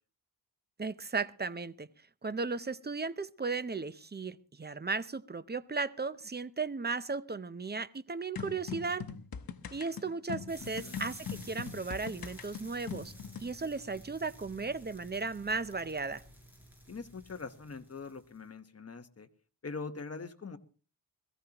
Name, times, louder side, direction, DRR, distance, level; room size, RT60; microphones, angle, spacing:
voice 1, 0.8-1.9 2.2-9.1 9.7-13.1 13.4-16.2, right 4 dB, 25° right, 15 dB, 0.6 m, -36 dB
sound 1, 8.4-13.5, left 7 dB, 55° left, 1.1 m, -42 dB
sound 2, 10.5-18.4, equal, 5° right, 7.8 m, -53 dB
voice 2, 10.6-11.0 16.9-19.3 19.6-20.6, left 4 dB, 35° left, 8 dB, 1.1 m, -43 dB
21.5 x 14.5 x 2.9 m, 0.36 s
wide cardioid pair, 95°, 44 cm